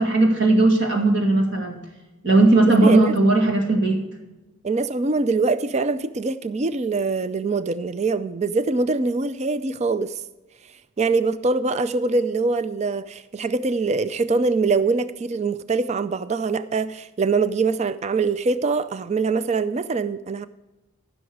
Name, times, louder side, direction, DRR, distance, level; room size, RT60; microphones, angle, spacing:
voice 1, 0.0-1.8 2.2-4.0, right 2 dB, 50° right, 2.2 m, -17 dB
voice 2, 2.8-3.1 4.6-10.1 11.0-20.5, right 3 dB, 30° right, 0.3 m, -23 dB
15.0 x 6.3 x 4.7 m
head